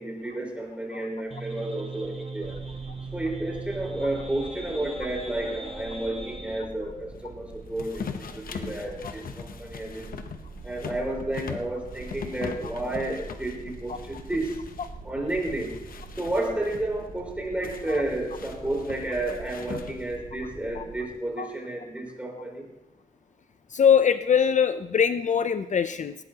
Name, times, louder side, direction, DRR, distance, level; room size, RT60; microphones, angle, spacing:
voice 1, 0.0-2.6 3.1-10.1 10.6-14.6 15.0-15.7 16.2-22.6, right 1 dB, 10° right, -2 dB, 4.7 m, -31 dB
sound 1, 1.3-6.7, right 3 dB, 40° right, 1.4 m, -39 dB
sound 2, 2.4-21.0, right 3 dB, 85° right, 2.7 m, -44 dB
sound 3, 7.8-14.9 15.3-16.8 17.6-20.2, left 6 dB, 90° left, 0.9 m, -40 dB
voice 2, 23.7-26.2, left 7 dB, 60° left, 11 dB, 0.5 m, -22 dB
18.5 x 18.0 x 2.9 m, 0.96 s
wide cardioid pair, 105°, 14 cm